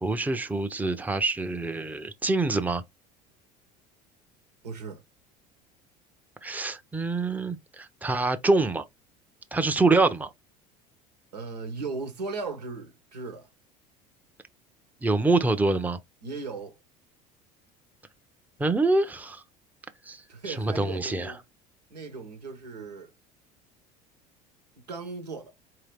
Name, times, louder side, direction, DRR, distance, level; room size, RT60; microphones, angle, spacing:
voice 1, 0.0-2.8 6.4-8.8 9.5-10.3 15.0-16.0 18.6-19.4 20.1-21.3, right 3 dB, 10° right, 0.7 m, -25 dB
voice 2, 4.6-5.0 11.3-13.5 16.2-16.8 20.3-21.4 21.9-23.1 24.9-25.5, right 4 dB, 85° right, 1.4 m, -37 dB
4.7 x 2.8 x 3.4 m
hypercardioid pair, 70°, 20 cm